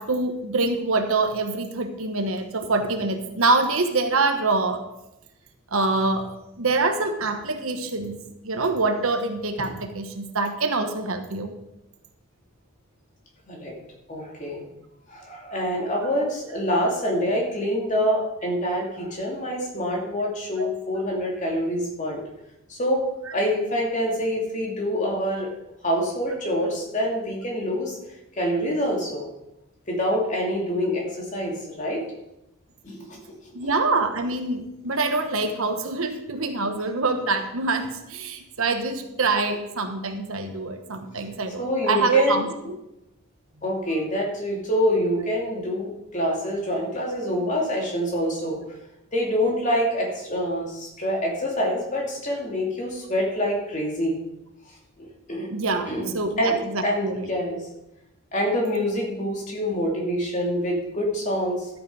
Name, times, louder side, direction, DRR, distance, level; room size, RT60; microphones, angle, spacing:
voice 1, 0.0-4.8 5.7-6.3 6.6-8.2 8.4-11.5 20.6-20.7 33.5-42.5 55.5-57.3, right 3 dB, 70° right, 6 dB, 1.3 m, -25 dB
voice 2, 14.1-14.6 15.1-22.2 22.7-23.0 23.3-25.5 25.8-28.0 28.3-29.3 29.9-32.0 32.8-33.7 41.6-42.5 43.6-48.6 49.1-54.2 55.0-55.5 55.9-57.6 58.3-61.7, equal, 35° left, -1 dB, 2.6 m, -26 dB
13.0 x 7.9 x 4.9 m, 0.90 s
head